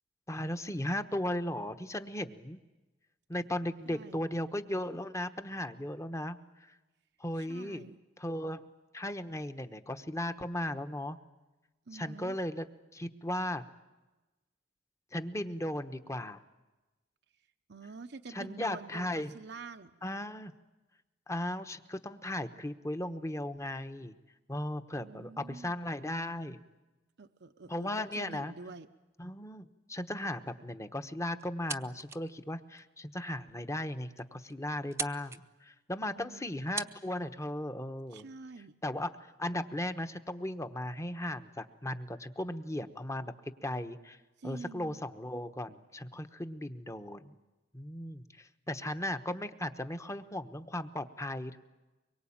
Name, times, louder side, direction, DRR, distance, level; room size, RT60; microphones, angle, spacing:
voice 1, 0.3-2.6 3.3-6.7 7.2-7.8 8.2-8.6 8.9-11.2 11.9-12.7 12.9-13.6 15.1-16.4 18.3-19.4 20.0-20.5 21.3-24.2 24.5-26.6 27.7-28.5 29.2-38.3 38.8-44.2 44.4-47.4 47.7-51.6, left 1 dB, 15° left, 9 dB, 1.1 m, -36 dB
voice 2, 3.9-4.2 7.4-8.0 11.9-12.3 17.7-20.0 25.0-25.8 27.2-28.9 36.1-36.5 38.1-38.8 44.4-45.0, right 4 dB, 65° right, 8 dB, 0.8 m, -47 dB
sound 1, 31.4-32.3 32.7-32.8 33.5-33.6 33.9-34.0 34.2-34.5 34.8-35.4 36.3-36.4 36.8-37.0, right 4 dB, 15° right, 0.8 m, -39 dB
24.0 x 23.0 x 8.8 m, 1.1 s
head